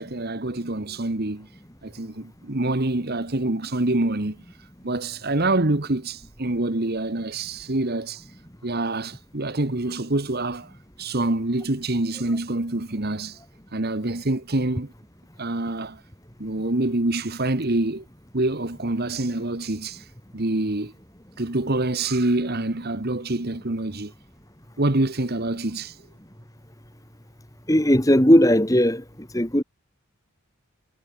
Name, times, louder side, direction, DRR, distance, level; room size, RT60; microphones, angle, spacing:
voice 1, 0.0-1.5 1.8-4.4 4.8-8.2 8.6-10.7 11.0-13.4 13.7-14.9 15.4-16.0 16.4-18.0 18.3-20.0 20.3-20.9 21.4-24.1 24.8-26.0, right 2 dB, 45° right, 1.4 m, -26 dB
voice 2, 27.7-29.0 29.3-29.6, equal, 15° left, 2.6 m, -17 dB
head